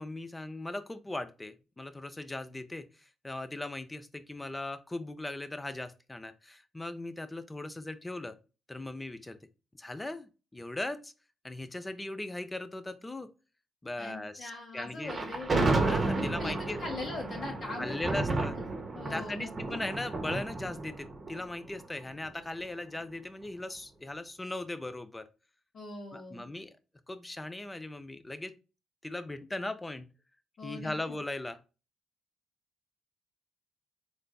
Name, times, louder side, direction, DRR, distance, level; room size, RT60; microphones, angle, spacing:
voice 1, 0.0-8.4 8.7-9.4 9.7-11.1 11.4-13.3 13.8-15.1 15.8-16.8 17.8-18.6 19.1-25.3 26.1-26.7 27.1-28.5 29.0-30.1 30.6-31.6, left 2 dB, 15° left, 12 dB, 0.4 m, -39 dB
voice 2, 14.0-15.5 16.1-19.8 25.7-26.4 30.6-31.2, left 2 dB, 55° left, 1 dB, 1.1 m, -41 dB
Thunder, 15.0-22.2, right 2 dB, 35° right, 0.9 m, -32 dB
3.9 x 3.3 x 2.2 m, 0.32 s
cardioid pair, 90°, 0 cm